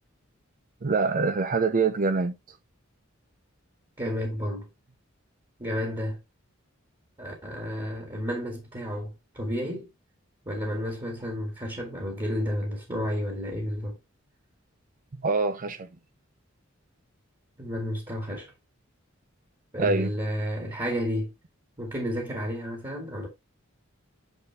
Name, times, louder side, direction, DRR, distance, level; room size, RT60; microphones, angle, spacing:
voice 1, 0.8-2.3 15.2-15.9 19.8-20.1, right 4 dB, 40° right, 0.6 m, -24 dB
voice 2, 4.0-4.7 5.6-6.2 7.2-9.9 10.5-14.0 17.6-18.5 19.7-21.3 21.8-23.3, equal, 25° right, 2.1 m, -31 dB
9.1 x 4.1 x 3.4 m
head